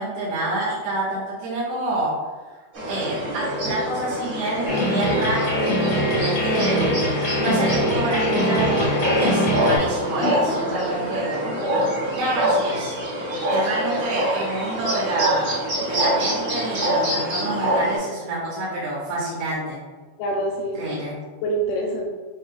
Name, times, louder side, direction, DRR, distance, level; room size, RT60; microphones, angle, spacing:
voice 1, 0.0-2.1 2.9-7.0 7.4-11.5 12.1-12.9 13.5-19.8 20.7-21.1, right 2 dB, 85° right, -8 dB, 3.0 m, -27 dB
sound 1, 2.7-18.0, equal, 60° right, 1.1 m, -25 dB
sound 2, 4.7-9.8, equal, 65° left, 1.2 m, -22 dB
voice 2, 10.2-10.7 20.2-21.0 21.4-22.1, right 1 dB, 80° left, 0 dB, 2.2 m, -26 dB
7.9 x 2.8 x 2.4 m, 1.3 s
omnidirectional pair, 4.6 m